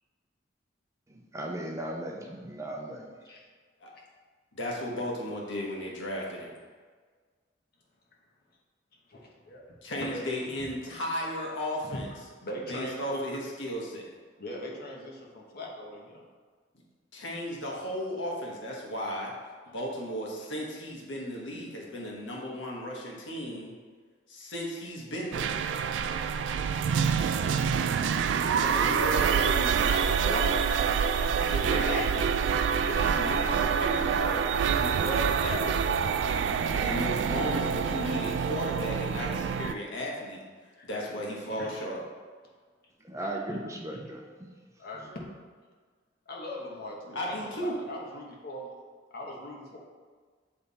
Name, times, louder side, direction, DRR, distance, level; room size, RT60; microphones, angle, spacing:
voice 1, 1.1-3.1 43.0-44.6, right 1 dB, 15° right, 0 dB, 0.6 m, -37 dB
voice 2, 4.5-6.5 9.8-12.0 12.7-14.1 17.1-19.3 19.7-23.7 24.3-25.6 28.6-30.7 31.4-32.3 32.8-40.4 40.8-42.0 47.1-47.8, equal, 90° left, -2 dB, 1.3 m, -35 dB
voice 3, 9.1-10.2 11.9-13.2 14.4-16.2 28.5-28.8 40.8-40.9 41.5-41.8 43.1-43.6 43.9-44.0 44.8-45.2 46.3-48.7 49.1-49.8, left 1 dB, 55° left, -1 dB, 1.1 m, -41 dB
sound 1, 25.3-39.7, right 6 dB, 70° right, 0.3 m, -26 dB
7.3 x 3.4 x 4.1 m, 1.5 s
head